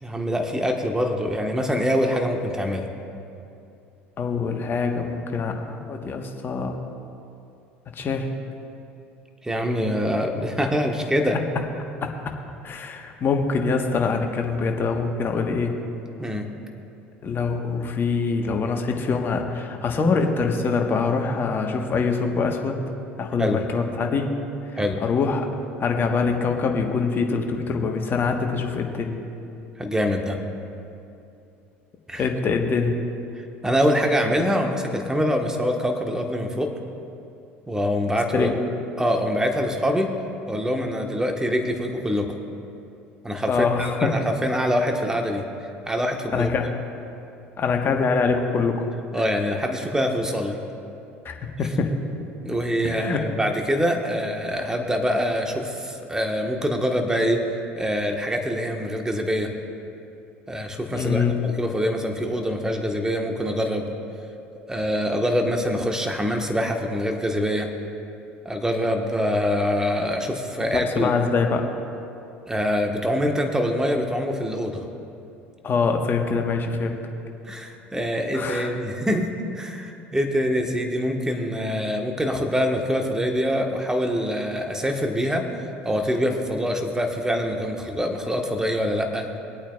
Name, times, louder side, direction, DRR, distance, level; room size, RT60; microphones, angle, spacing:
voice 1, 0.0-2.9 9.4-11.4 16.2-16.5 23.4-23.6 24.8-25.0 29.8-30.4 32.1-32.2 33.4-36.8 37.7-38.5 39.0-40.1 40.5-42.3 43.2-45.4 45.9-46.5 49.1-50.6 52.4-57.4 57.8-59.5 60.5-63.9 64.7-67.7 68.4-71.1 72.5-74.8 77.4-85.5 85.8-89.3, equal, 10° right, 3 dB, 1.3 m, -24 dB
voice 2, 4.2-6.8 7.9-8.3 12.0-12.1 12.6-15.8 17.2-22.8 23.2-24.3 24.7-25.5 25.8-29.2 32.2-32.9 38.3-38.5 43.5-44.2 46.3-46.7 47.6-48.9 49.2-49.3 51.2-52.0 52.8-53.2 60.9-61.3 70.6-71.6 75.6-77.0 78.3-78.7, left 4 dB, 35° left, 3 dB, 1.3 m, -24 dB
23.0 x 8.7 x 2.4 m, 2.7 s
hypercardioid pair, 65°, 6 cm